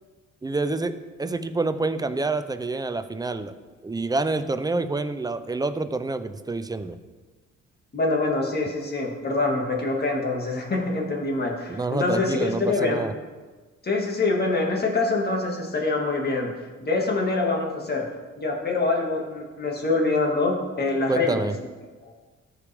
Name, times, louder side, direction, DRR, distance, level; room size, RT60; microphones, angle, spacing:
voice 1, 0.4-0.9 1.2-3.6 3.8-7.0 11.7-13.1 21.1-21.6, right 3 dB, 15° right, 11 dB, 0.5 m, -27 dB
voice 2, 7.9-13.0 13.8-16.5 16.8-18.1 18.4-21.5 22.0-22.1, left 3 dB, 35° left, -1 dB, 2.1 m, -25 dB
14.0 x 5.0 x 3.6 m, 1.3 s
cardioid pair, 90°, 30 cm